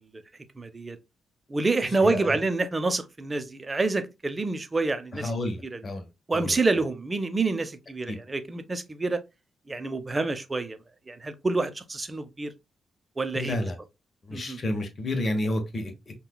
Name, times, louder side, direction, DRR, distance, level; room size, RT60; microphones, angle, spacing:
voice 1, 0.6-1.0 1.5-5.3 5.6-5.8 6.3-9.2 9.7-10.8 11.1-12.5 13.2-13.7 14.3-14.6, right 3 dB, 30° right, 0.6 m, -27 dB
voice 2, 5.1-6.1 6.3-6.6 8.1-8.2 13.3-13.8 14.3-15.9, left 1 dB, 45° left, 1.0 m, -30 dB
5.5 x 2.3 x 2.2 m
supercardioid pair, 60°, 0 cm